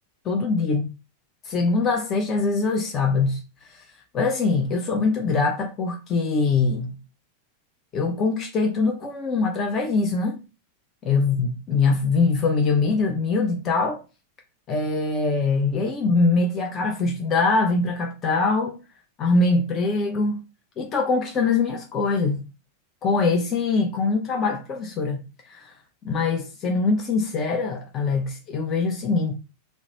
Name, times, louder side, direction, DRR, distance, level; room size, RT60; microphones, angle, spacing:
voice 1, 0.2-0.9 1.4-3.4 3.7-3.8 4.1-6.9 7.9-10.4 11.0-14.0 14.7-18.8 19.2-20.4 20.8-22.4 23.0-25.7 26.0-29.3, left 3 dB, 30° left, 0.5 m, -23 dB
2.9 x 2.1 x 2.8 m
figure-of-eight pair, 90°, 0 cm